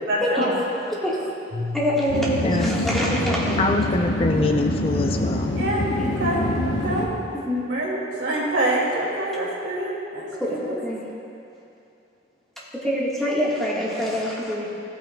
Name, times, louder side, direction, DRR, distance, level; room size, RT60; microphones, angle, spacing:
voice 1, 0.1-0.5 5.5-5.9 6.2-7.1 7.7-10.7, right 1 dB, 80° right, -4 dB, 2.2 m, -26 dB
voice 2, 1.0-3.6 6.0-6.1 7.3-7.6 10.3-11.0 12.8-14.7, equal, ahead, -7 dB, 1.4 m, -25 dB
Piano, 1.5-7.1, left 2 dB, 45° right, 1.1 m, -39 dB
sound 1, 2.1-7.1, left 1 dB, 70° left, 0.9 m, -25 dB
voice 3, 2.4-2.8 3.6-5.5, left 2 dB, 30° left, 4 dB, 0.4 m, -24 dB
15.5 x 8.9 x 2.2 m, 2.6 s
head